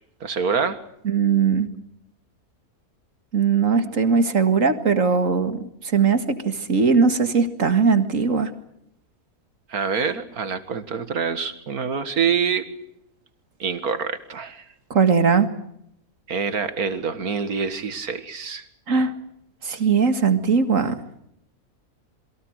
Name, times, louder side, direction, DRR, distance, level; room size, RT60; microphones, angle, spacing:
voice 1, 0.2-0.8 9.7-12.7 13.6-14.6 16.3-18.6, right 6 dB, 80° right, 11 dB, 2.4 m, -26 dB
voice 2, 1.0-1.7 3.3-8.5 14.9-15.5 18.9-19.1 19.6-21.0, right 5 dB, 60° right, 10 dB, 2.3 m, -20 dB
28.0 x 22.5 x 6.5 m, 0.74 s
omnidirectional pair, 1.5 m